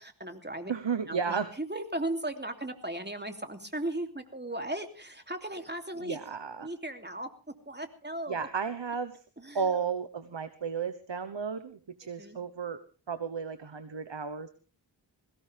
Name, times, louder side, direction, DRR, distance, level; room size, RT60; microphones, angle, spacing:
voice 1, 0.0-0.7 1.1-6.2 6.6-7.3 7.7-8.5 9.4-9.7 12.0-12.4, right 1 dB, 20° right, 6 dB, 2.9 m, -37 dB
voice 2, 0.7-1.5 6.0-6.7 8.3-9.2 9.5-12.8 13.1-14.5, right 6 dB, 65° right, 11 dB, 1.2 m, -33 dB
21.0 x 16.5 x 3.4 m, 0.36 s
wide cardioid pair, 40°, 46 cm